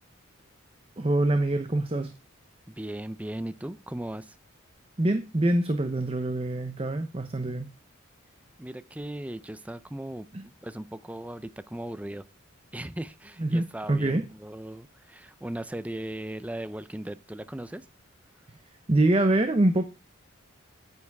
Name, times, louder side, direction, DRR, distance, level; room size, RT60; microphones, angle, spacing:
voice 1, 1.0-2.1 5.0-7.7 10.3-10.4 13.4-14.2 18.9-19.8, right 1 dB, 25° right, 0.8 m, -25 dB
voice 2, 2.7-4.4 8.6-12.2 12.7-17.9, right 1 dB, 5° right, 0.5 m, -38 dB
9.6 x 9.5 x 3.5 m
head